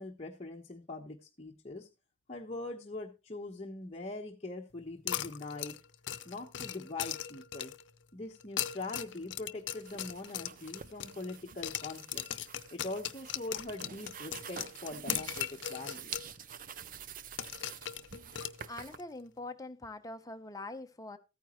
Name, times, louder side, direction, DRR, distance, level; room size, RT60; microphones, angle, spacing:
voice 1, 0.0-1.9 2.3-5.8 6.2-7.7 8.1-12.2 12.7-16.3, left 2 dB, 35° left, 1.2 m, -42 dB
sound 1, 5.1-7.9 8.4-11.4 11.6-16.3 16.6-16.7 17.4-19.0, left 11 dB, 85° left, 0.7 m, -38 dB
sound 2, 9.8-19.0, right 7 dB, 50° right, 0.6 m, -47 dB
voice 2, 18.6-21.2, left 2 dB, 20° left, 0.9 m, -43 dB
14.5 x 9.2 x 3.1 m
head